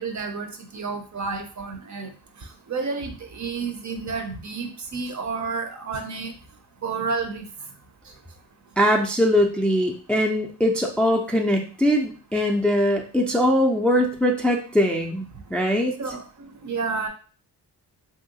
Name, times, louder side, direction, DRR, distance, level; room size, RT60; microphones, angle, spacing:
voice 1, 0.0-2.1 2.4-6.3 6.8-7.4 16.0-17.1, right 4 dB, 45° right, 6 dB, 0.6 m, -30 dB
voice 2, 8.8-15.9, equal, 5° left, 1 dB, 0.4 m, -21 dB
3.0 x 2.7 x 2.7 m, 0.40 s
cardioid pair, 80°, 40 cm